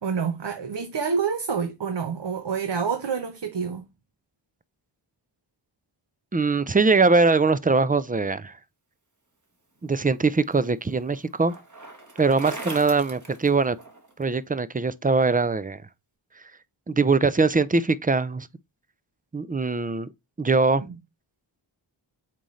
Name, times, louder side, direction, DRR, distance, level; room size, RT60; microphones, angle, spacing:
voice 1, 0.0-3.9, right 6 dB, 60° right, 0.9 m, -27 dB
voice 2, 6.3-8.5 9.8-11.6 12.2-13.8 14.2-15.8 16.9-18.5 19.3-20.1 20.4-20.9, right 4 dB, 20° right, 0.5 m, -22 dB
Bicycle, 9.8-14.2, right 2 dB, 35° right, 1.6 m, -41 dB
7.5 x 4.1 x 3.2 m
wide cardioid pair, 45°, 49 cm